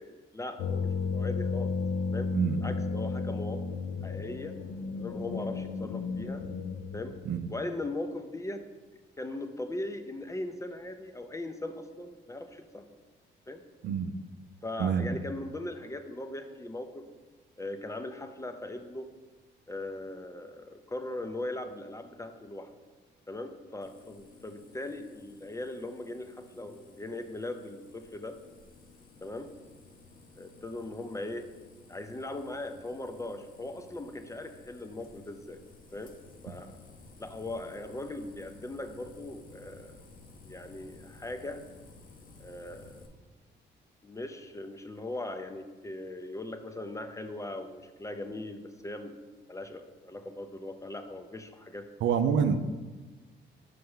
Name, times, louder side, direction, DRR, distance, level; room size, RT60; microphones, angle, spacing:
voice 1, 0.0-1.8 2.1-2.3 2.6-3.6 4.0-4.6 5.0-6.5 6.9-7.2 7.5-8.6 9.2-12.9 13.5-13.6 14.6-17.1 17.6-19.1 19.7-22.7 23.3-28.4 29.2-29.5 30.4-31.5 31.9-35.6 35.9-36.2 36.4-36.7 37.2-40.0 40.4-41.6 42.4-43.0 44.0-49.2 49.5-51.9, left 2 dB, 15° left, 7 dB, 0.5 m, -39 dB
sound 1, 0.6-7.2, left 4 dB, 80° left, 0.6 m, -33 dB
voice 2, 14.8-15.2 52.0-52.6, right 7 dB, 70° right, 8 dB, 0.5 m, -26 dB
sound 2, 23.8-43.1, left 3 dB, 45° left, 0.8 m, -55 dB
5.7 x 3.3 x 5.5 m, 1.3 s
cardioid pair, 90°, 20 cm